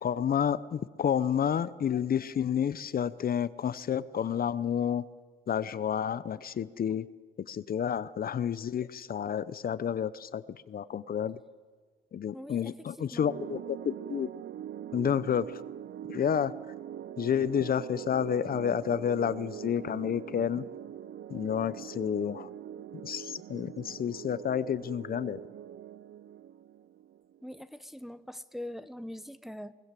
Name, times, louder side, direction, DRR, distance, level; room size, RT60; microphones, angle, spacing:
voice 1, 0.0-5.0 5.5-7.0 7.5-11.4 12.1-14.3 14.9-15.6 16.1-16.5 17.2-20.6 21.3-22.5 23.0-25.4, left 8 dB, 50° left, 16 dB, 0.7 m, -30 dB
voice 2, 12.3-13.3 27.4-29.7, left 1 dB, ahead, 12 dB, 0.8 m, -43 dB
sound 1, 13.3-27.6, right 10 dB, 65° right, 0.7 m, -43 dB
22.0 x 20.5 x 7.6 m, 1.5 s
cardioid pair, 90°, 20 cm